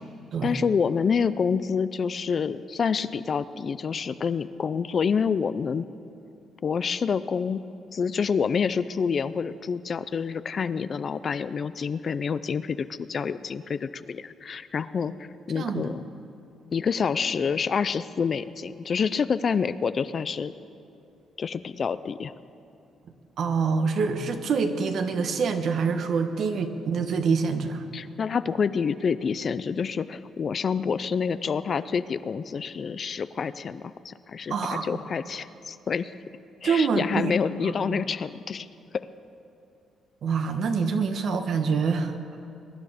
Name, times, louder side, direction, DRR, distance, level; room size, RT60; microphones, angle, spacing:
voice 1, 0.4-5.9 6.6-7.6 7.9-15.1 15.5-16.0 16.7-20.5 21.4-22.3 27.9-36.1 36.6-38.7, left 6 dB, 45° left, 14 dB, 0.5 m, -27 dB
voice 2, 15.5-15.9 23.4-27.9 34.5-34.9 36.6-37.3 37.6-38.0 40.2-42.2, right 5 dB, 65° right, 7 dB, 1.2 m, -26 dB
22.5 x 11.0 x 5.1 m, 2.7 s
cardioid pair, 90°, 0 cm